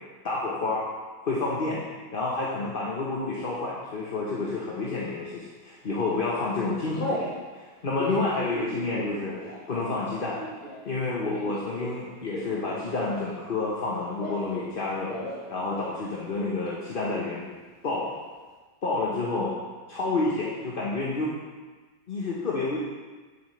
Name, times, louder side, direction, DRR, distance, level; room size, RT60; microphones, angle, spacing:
voice 1, 0.2-0.8 1.2-1.8 2.1-10.4 10.8-15.1 15.5-17.5 17.8-18.2 18.8-19.5 19.9-21.3 22.1-22.8, left 3 dB, 35° left, -5 dB, 0.9 m, -29 dB
Telephone, 4.8-5.3 5.9-6.1 6.4-7.3 7.8-13.3 13.6-14.7 15.0-15.5 15.8-15.9 16.1-16.7, left 1 dB, 65° left, 3.8 m, -37 dB
10.5 x 7.4 x 3.2 m, 1.3 s
omnidirectional pair, 2.0 m